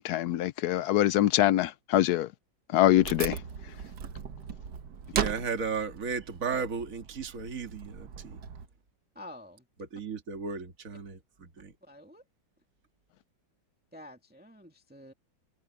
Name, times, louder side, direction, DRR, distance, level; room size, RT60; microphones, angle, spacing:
voice 1, 0.0-2.3 2.7-3.4, left 13 dB, 75° left, 0.9 m, -24 dB
Wood, 2.9-8.7, right 7 dB, 60° right, 1.7 m, -37 dB
voice 2, 5.1-8.4 9.8-11.7, right 5 dB, 40° right, 2.4 m, -35 dB
voice 3, 9.2-9.6 11.8-12.2 13.9-15.1, left 1 dB, 5° right, 1.9 m, -48 dB
open air
omnidirectional pair, 2.2 m